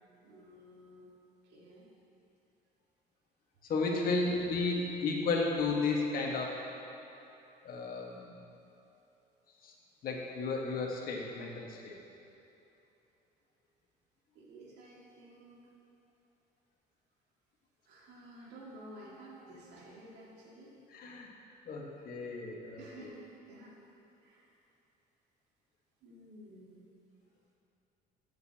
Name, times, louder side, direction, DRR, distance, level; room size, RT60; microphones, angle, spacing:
voice 1, 0.2-1.1 1.4-1.9 4.5-4.6 14.3-15.6 17.8-20.8 22.7-23.7 24.2-24.6 26.0-26.8, right 1 dB, 85° right, -4 dB, 2.1 m, -52 dB
voice 2, 3.7-6.5 7.6-8.3 9.6-9.7 10.0-12.0 20.9-21.3 21.6-23.1, left 3 dB, 60° left, -1 dB, 1.5 m, -33 dB
15.0 x 6.9 x 2.9 m, 2.9 s
cardioid pair, 110°, 17 cm